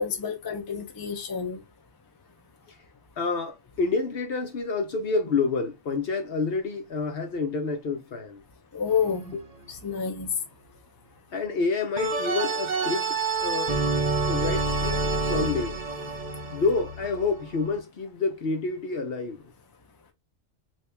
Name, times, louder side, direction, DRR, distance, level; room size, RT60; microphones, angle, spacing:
voice 1, 0.0-1.6 8.7-9.2 9.8-10.3, left 6 dB, 25° left, 0.5 m, -28 dB
voice 2, 3.2-8.4 9.3-9.4 11.3-13.8 14.3-15.8 16.5-19.5, left 4 dB, 55° left, 0.9 m, -28 dB
sound 1, 8.9-9.4 12.0-17.7, right 3 dB, 45° right, 0.6 m, -28 dB
2.9 x 2.7 x 3.4 m
omnidirectional pair, 1.3 m